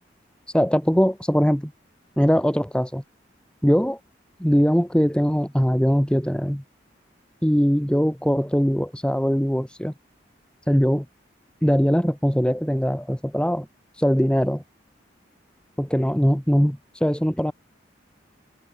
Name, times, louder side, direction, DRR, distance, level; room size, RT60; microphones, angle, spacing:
voice 1, 0.5-1.7 2.2-3.0 3.6-4.0 4.4-6.6 7.4-9.9 10.7-11.0 11.6-13.7 14.0-14.6 15.8-17.5, equal, 5° left, 1.5 m, -21 dB
head